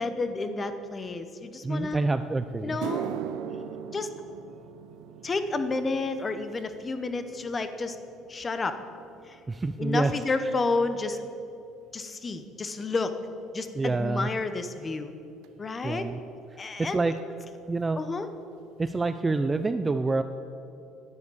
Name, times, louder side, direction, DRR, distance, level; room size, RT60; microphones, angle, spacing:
voice 1, 0.0-2.0 2.6-3.2 3.9-4.1 5.2-8.0 8.3-8.8 9.3-9.4 9.8-11.2 11.9-13.1 13.5-15.1 15.6-16.1 16.6-17.0 18.0-18.3, left 3 dB, 20° left, 9 dB, 0.8 m, -30 dB
voice 2, 1.6-2.8 9.5-10.1 13.8-14.3 15.8-16.2 16.8-17.1 17.7-18.0 18.8-20.2, right 3 dB, 15° right, 10 dB, 0.3 m, -27 dB
sound 1, 2.1-2.2 2.6-11.1 11.4-11.8 12.6-12.7 15.4-15.5 17.2-17.3 17.5-17.7 18.0-18.5 18.9-19.0 19.5-19.6, right 9 dB, 75° right, 0.8 m, -41 dB
10.5 x 10.0 x 8.4 m, 2.8 s
cardioid pair, 170°, 0 cm